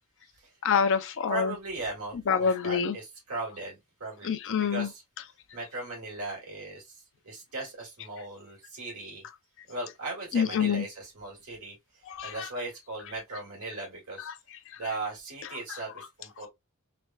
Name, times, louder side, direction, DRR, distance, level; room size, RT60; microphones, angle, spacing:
voice 1, 0.6-1.5 2.3-3.0 4.2-4.9 10.3-10.8 12.1-12.5, left 6 dB, 60° left, 0.5 m, -26 dB
voice 2, 1.3-4.4 4.7-5.0 5.5-9.2 9.7-14.3 14.8-16.5, right 2 dB, 80° right, 1.6 m, -38 dB
3.3 x 2.2 x 2.4 m
head